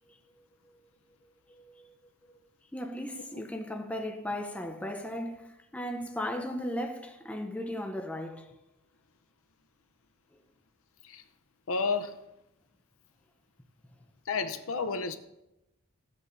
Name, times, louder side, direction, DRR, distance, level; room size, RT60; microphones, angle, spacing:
voice 1, 1.6-1.9 2.7-8.5, left 1 dB, 5° left, 0.6 m, -36 dB
voice 2, 11.7-12.2 14.3-15.2, left 4 dB, 65° left, 0.7 m, -31 dB
14.5 x 8.3 x 2.6 m
head